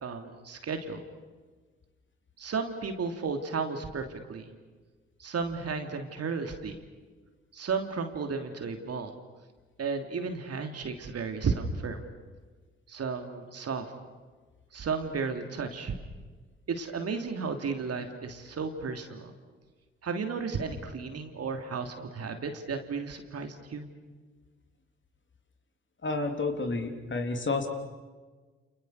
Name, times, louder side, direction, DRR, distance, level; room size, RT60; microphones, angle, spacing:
voice 1, 0.0-1.0 2.4-4.0 4.3-4.5 5.2-6.8 7.5-9.1 9.8-12.0 12.9-13.9 14.7-15.9 16.7-19.3 20.0-23.9, right 5 dB, 50° right, 6 dB, 3.1 m, -33 dB
voice 2, 26.0-27.7, left 3 dB, 35° left, 5 dB, 3.8 m, -30 dB
29.5 x 28.5 x 6.6 m, 1.4 s
hypercardioid pair, 45°, 31 cm